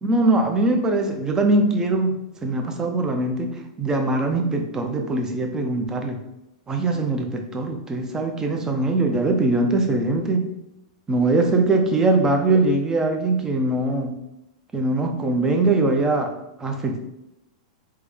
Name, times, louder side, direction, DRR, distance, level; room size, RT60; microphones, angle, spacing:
voice 1, 0.0-6.2 6.7-10.5 11.1-14.1 14.7-16.3 16.6-17.0, right 2 dB, 15° right, 4 dB, 0.5 m, -22 dB
3.3 x 2.1 x 3.4 m, 0.88 s
hypercardioid pair, 115°, 4 cm